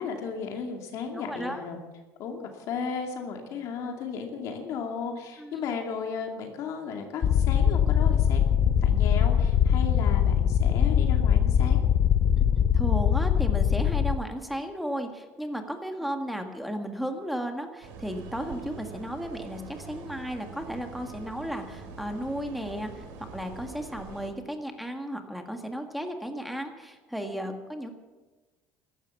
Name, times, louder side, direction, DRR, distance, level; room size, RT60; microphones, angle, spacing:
voice 1, 0.0-1.8 2.2-11.8 16.0-16.1, left 6 dB, 60° left, 3 dB, 2.4 m, -35 dB
voice 2, 1.1-1.6 5.4-5.6 12.4-27.9, equal, ahead, 5 dB, 1.7 m, -34 dB
sound 1, 7.2-14.2, left 9 dB, 40° left, 0.6 m, -22 dB
sound 2, 17.8-24.3, right 4 dB, 85° right, 3.5 m, -44 dB
14.5 x 12.5 x 7.2 m, 1.2 s
cardioid pair, 145°, 6 cm